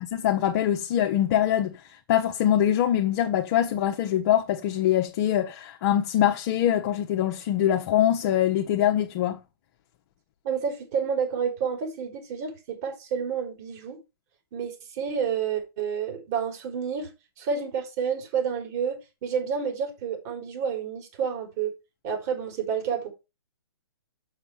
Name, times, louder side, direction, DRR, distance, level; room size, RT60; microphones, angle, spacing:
voice 1, 0.2-1.8 2.1-9.4, left 11 dB, 45° left, 1.1 m, -23 dB
voice 2, 10.4-14.0 14.5-17.1 17.4-21.7 22.0-23.1, right 7 dB, 40° right, 3.8 m, -29 dB
7.3 x 6.7 x 4.5 m
figure-of-eight pair, 125°, 13 cm